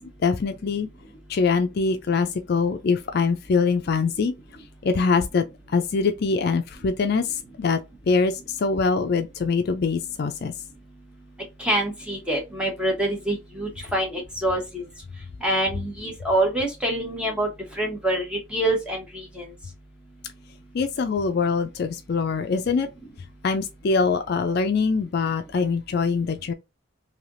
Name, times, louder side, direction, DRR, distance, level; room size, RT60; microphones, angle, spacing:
voice 1, 0.2-0.9 1.3-4.3 4.8-5.4 5.7-7.2 7.6-7.8 8.1-8.3 8.6-10.5 20.7-22.9 23.4-26.5, left 4 dB, 50° left, 0.4 m, -23 dB
voice 2, 11.6-14.8 15.4-17.5 17.8-19.5, right 1 dB, 5° right, 1.0 m, -26 dB
3.3 x 2.7 x 2.5 m
head